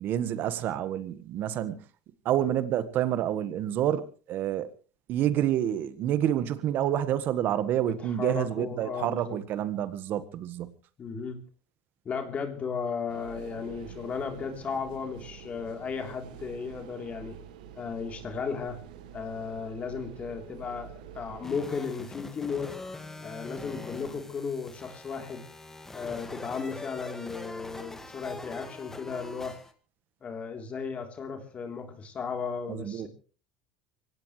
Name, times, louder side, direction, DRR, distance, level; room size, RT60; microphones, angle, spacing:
voice 1, 0.0-1.8 2.2-4.7 5.1-10.7 32.7-33.1, right 11 dB, 50° right, 14 dB, 1.6 m, -28 dB
voice 2, 8.2-9.4 11.0-11.4 12.1-17.4 17.8-18.8 19.1-22.8 23.2-25.4 25.9-29.6 30.2-33.1, left 5 dB, 35° left, 4 dB, 3.6 m, -35 dB
sound 1, 13.1-21.5, right 8 dB, 85° right, 1.6 m, -47 dB
sound 2, 21.4-29.7, left 2 dB, 10° left, 2.0 m, -43 dB
23.5 x 17.5 x 3.3 m, 0.39 s
supercardioid pair, 105°, 4 cm